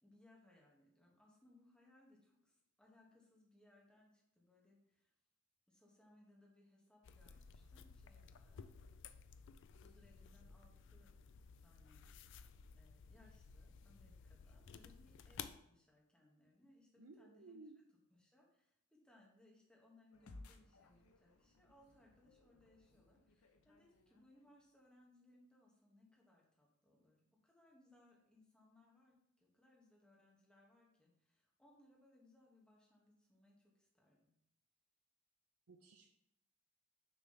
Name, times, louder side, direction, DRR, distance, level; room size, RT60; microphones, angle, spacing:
voice 1, 0.0-5.1 5.7-8.8 9.8-11.1 11.6-12.4 12.7-17.6 17.9-34.3, left 1 dB, 5° left, -2 dB, 1.3 m, -69 dB
sound 1, 7.0-15.6, left 6 dB, 55° left, 0.4 m, -56 dB
voice 2, 17.0-17.8 35.7-36.1, right 3 dB, 75° right, 2 dB, 0.6 m, -58 dB
sound 2, 20.1-24.8, left 2 dB, 90° left, 0.7 m, -62 dB
6.3 x 3.3 x 5.6 m, 0.78 s
head